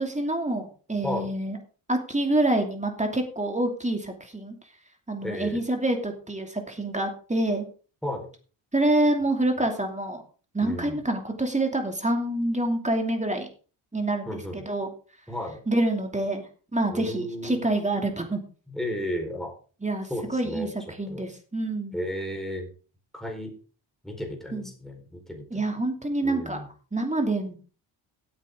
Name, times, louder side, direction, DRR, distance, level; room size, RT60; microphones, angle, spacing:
voice 1, 0.0-1.6 1.9-4.6 5.1-7.7 8.7-10.2 10.5-13.5 13.9-14.9 15.7-18.4 19.8-20.7 21.0-22.0 24.5-24.7 25.5-26.6 26.9-27.5, right 1 dB, 15° right, 4 dB, 2.7 m, -27 dB
voice 2, 5.2-5.6 8.0-8.3 10.6-11.0 14.3-14.7 15.3-15.6 16.9-17.6 18.7-19.5 20.1-20.7 21.1-21.2 21.9-22.7 23.1-23.5 24.0-25.7 26.2-26.7, left 1 dB, ahead, 1 dB, 4.5 m, -33 dB
16.5 x 9.4 x 3.8 m, 0.38 s
cardioid pair, 100°, 47 cm